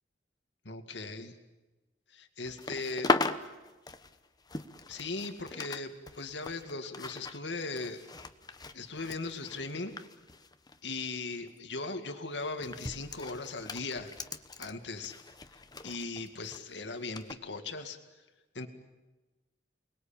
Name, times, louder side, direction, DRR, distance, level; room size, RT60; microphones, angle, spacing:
voice 1, 0.7-1.3 2.1-3.1 4.9-8.0 8.7-9.9 10.8-14.2 14.6-15.1 15.8-18.0 18.5-18.7, left 3 dB, 85° left, 7 dB, 2.1 m, -38 dB
sound 1, 2.5-5.8 6.1-11.0 11.3-11.6 12.4-16.6 17.2-17.3, left 3 dB, 25° left, 1.1 m, -38 dB
29.5 x 21.0 x 8.8 m, 1.2 s
head